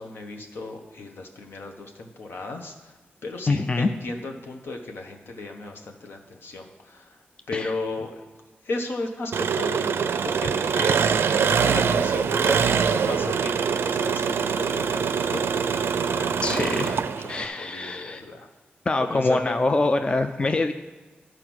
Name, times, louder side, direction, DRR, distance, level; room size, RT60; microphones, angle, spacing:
voice 1, 0.0-2.9 3.2-7.2 7.5-8.2 8.6-9.9 10.2-18.5 19.0-19.5, left 2 dB, 75° left, 3 dB, 1.2 m, -35 dB
voice 2, 3.5-3.9 7.5-7.7 16.4-17.0 17.3-18.2 18.9-20.7, left 2 dB, 25° left, 7 dB, 0.4 m, -24 dB
Engine, 9.3-17.4, right 6 dB, 90° right, 0.4 m, -24 dB
12.0 x 4.9 x 6.2 m, 1.3 s
wide cardioid pair, 115°, 4 cm